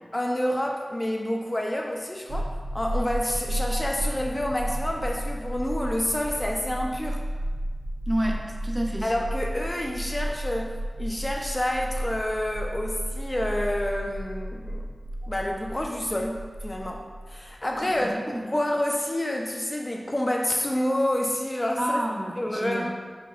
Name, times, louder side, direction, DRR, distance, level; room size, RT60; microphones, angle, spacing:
voice 1, 0.1-7.2 9.0-14.9 15.3-18.2 18.5-22.0 22.4-22.9, left 1 dB, 30° left, 0 dB, 0.4 m, -28 dB
sound 1, 2.3-18.0, right 1 dB, 75° right, 0.4 m, -33 dB
voice 2, 8.1-9.1 18.0-18.2 21.8-22.9, right 1 dB, 20° right, 0 dB, 0.6 m, -29 dB
5.8 x 2.9 x 2.4 m, 1.5 s
wide cardioid pair, 55°, 0 cm